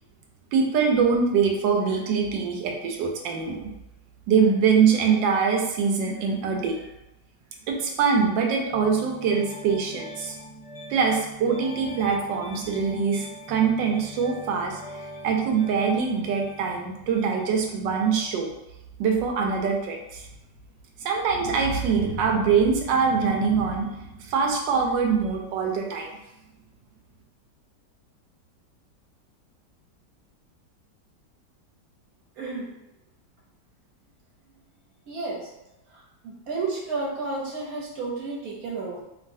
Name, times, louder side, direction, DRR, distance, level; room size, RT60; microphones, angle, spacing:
voice 1, 0.5-3.7 4.3-6.8 7.7-10.4 10.9-18.5 19.0-20.3 21.0-26.1, right 6 dB, 85° right, 1 dB, 1.3 m, -23 dB
Piano, 8.7-18.4, left 1 dB, 50° left, 0.4 m, -43 dB
voice 2, 32.4-32.7 35.1-35.5 35.9-39.0, right 3 dB, 65° right, -3 dB, 1.1 m, -32 dB
3.1 x 2.5 x 2.6 m, 0.92 s
omnidirectional pair, 1.9 m